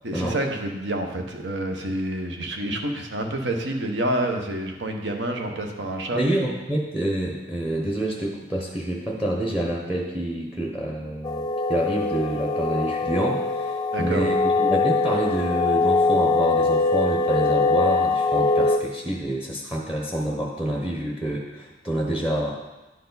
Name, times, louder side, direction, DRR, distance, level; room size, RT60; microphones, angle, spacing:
voice 1, 0.0-6.2 13.9-14.3, right 1 dB, 70° right, 3 dB, 1.0 m, -28 dB
voice 2, 6.1-22.6, right 1 dB, 5° right, -1 dB, 0.8 m, -27 dB
sound 1, 11.2-18.8, left 3 dB, 20° left, 0.3 m, -22 dB
10.5 x 4.7 x 4.0 m, 1.1 s
head